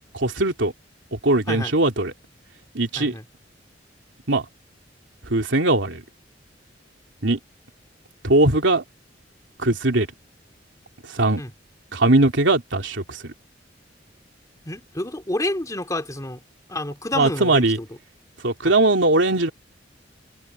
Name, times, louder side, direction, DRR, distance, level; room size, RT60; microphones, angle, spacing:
voice 1, 0.1-0.7 1.1-2.1 2.7-3.1 4.3-4.4 5.3-6.0 7.2-7.4 8.2-8.8 9.6-10.1 11.1-11.4 11.9-13.3 17.1-17.8 18.4-19.5, right 2 dB, 80° right, 3.1 m, -20 dB
voice 2, 14.7-16.4 16.7-17.9, left 1 dB, 20° left, 3.1 m, -29 dB
head